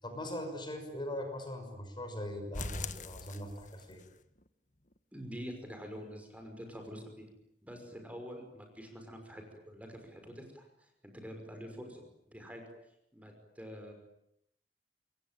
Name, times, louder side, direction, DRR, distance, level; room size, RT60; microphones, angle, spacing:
voice 1, 0.0-4.0, left 1 dB, 25° left, 5 dB, 6.1 m, -40 dB
sound 1, 2.5-4.1 4.4-4.5 4.9-5.0 5.4-5.5, left 4 dB, 45° left, 1.5 m, -42 dB
voice 2, 5.1-7.3 7.6-12.6 13.1-13.9, equal, 10° right, 4 dB, 5.8 m, -46 dB
28.0 x 23.0 x 9.2 m, 0.76 s
head